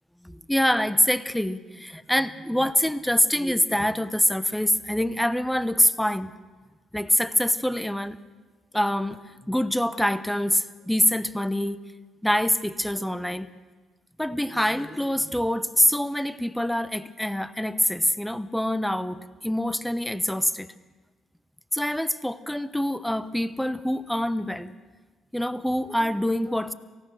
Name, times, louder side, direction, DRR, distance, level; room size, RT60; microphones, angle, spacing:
voice 1, 0.2-6.3 6.9-8.2 8.7-11.8 12.2-13.5 14.2-20.7 21.7-24.7 25.3-26.7, equal, 5° left, 13 dB, 0.8 m, -25 dB
28.0 x 16.5 x 6.3 m, 1.3 s
cardioid pair, 90°, 0 cm